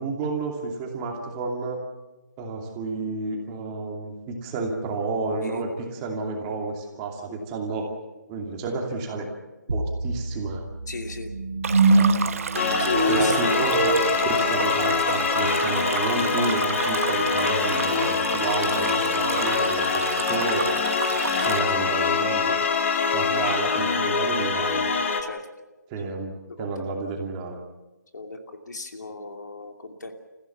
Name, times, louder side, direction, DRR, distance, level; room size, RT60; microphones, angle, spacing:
voice 1, 0.0-1.8 2.4-7.9 8.3-9.3 9.7-10.6 11.9-12.1 13.1-13.9 14.3-20.7 21.5-22.6 23.1-24.8 25.9-26.3 26.6-27.6, right 3 dB, 15° right, 1 dB, 2.6 m, -30 dB
sound 1, 9.7-18.8, right 3 dB, 75° right, 3.4 m, -27 dB
voice 2, 10.9-11.3 12.8-13.6 21.4-21.7 25.2-25.4 26.0-26.1 26.6-26.7 28.1-28.4 28.7-30.2, left 3 dB, 65° left, 4 dB, 2.8 m, -35 dB
Stream, 11.6-21.6, right 6 dB, 45° right, 1.3 m, -32 dB
sound 2, 12.5-25.2, left 5 dB, 40° left, 2.2 m, -24 dB
29.0 x 15.5 x 7.1 m, 1.1 s
figure-of-eight pair, 160°, 10 cm